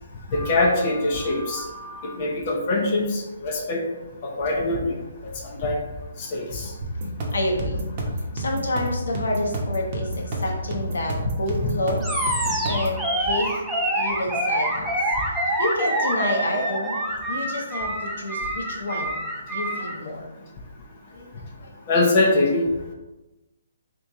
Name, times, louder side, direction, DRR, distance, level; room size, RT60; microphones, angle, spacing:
voice 1, 0.3-3.8 4.2-4.8 5.2-5.3 5.6-5.8 6.3-6.7 21.9-22.6, left 2 dB, 40° left, -1 dB, 0.7 m, -23 dB
sound 1, 6.8-13.0, right 1 dB, 40° right, 0.9 m, -29 dB
voice 2, 7.3-7.8 8.3-13.5 13.9-15.0 15.3-17.0 17.3-19.2 19.5-20.3 21.1-21.8, left 1 dB, 75° left, 1 dB, 1.0 m, -29 dB
Animal, 12.0-20.0, right 1 dB, 5° right, 0.6 m, -26 dB
3.5 x 2.9 x 3.7 m, 1.0 s
hypercardioid pair, 145°, 0 cm